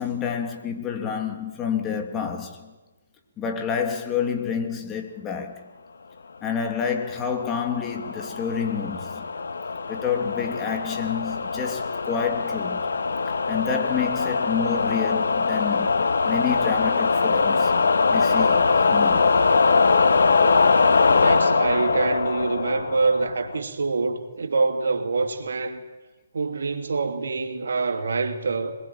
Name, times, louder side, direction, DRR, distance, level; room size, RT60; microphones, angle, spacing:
voice 1, 0.0-2.7 3.4-5.7 6.4-9.2 9.9-12.9 13.5-17.7 18.1-19.3, left 7 dB, 20° left, 3.0 m, -29 dB
sound 1, 7.1-23.6, left 4 dB, 70° left, 2.0 m, -22 dB
voice 2, 21.1-25.8 26.3-28.8, right 4 dB, 70° right, 2.7 m, -25 dB
25.5 x 21.0 x 9.0 m
figure-of-eight pair, 135°, 0 cm